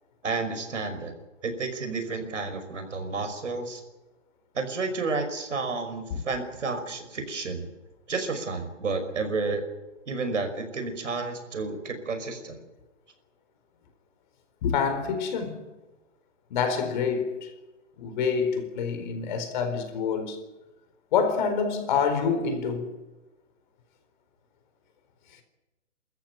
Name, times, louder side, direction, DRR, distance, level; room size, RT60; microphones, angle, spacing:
voice 1, 0.2-1.1 1.4-3.8 4.5-7.7 8.1-9.6 10.1-12.6, right 4 dB, 85° right, 5.5 m, -31 dB
voice 2, 14.6-15.6 16.5-17.5 18.0-20.4 21.1-22.9, left 6 dB, 40° left, 4.3 m, -27 dB
26.0 x 14.0 x 9.3 m
hypercardioid pair, 155°, 36 cm